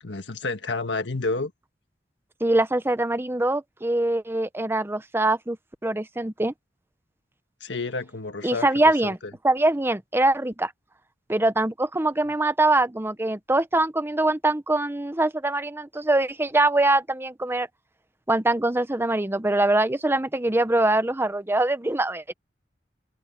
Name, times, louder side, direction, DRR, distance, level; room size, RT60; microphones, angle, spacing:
voice 1, 0.0-1.5 7.6-9.3, left 3 dB, 80° left, 1.7 m, -30 dB
voice 2, 2.4-5.6 5.8-6.5 8.4-9.2 9.4-10.7 11.3-17.7 18.3-22.3, right 2 dB, 15° right, 0.8 m, -23 dB
open air
head